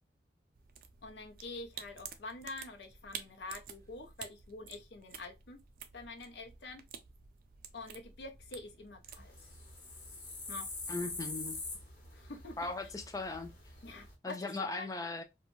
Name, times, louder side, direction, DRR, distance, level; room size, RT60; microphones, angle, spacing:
sound 1, 0.5-9.3, right 8 dB, 50° right, 0.4 m, -51 dB
voice 1, 1.0-5.6 5.9-6.8 7.7-9.3 10.5-10.7 12.1-12.6 13.8-14.9, left 3 dB, 80° left, 0.6 m, -46 dB
sound 2, 9.1-14.1, left 3 dB, 45° left, 1.0 m, -45 dB
voice 2, 10.9-11.6 12.6-13.5 14.2-15.2, left 3 dB, 20° left, 0.3 m, -38 dB
2.5 x 2.2 x 3.0 m
head